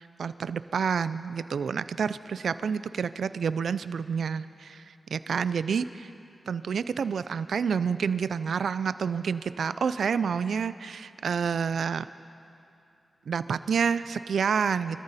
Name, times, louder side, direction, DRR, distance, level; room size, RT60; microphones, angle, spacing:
voice 1, 0.0-6.1 6.5-12.1 13.3-15.0, right 6 dB, 85° right, 14 dB, 0.4 m, -29 dB
25.0 x 14.0 x 4.1 m, 2.6 s
cardioid pair, 60°, 0 cm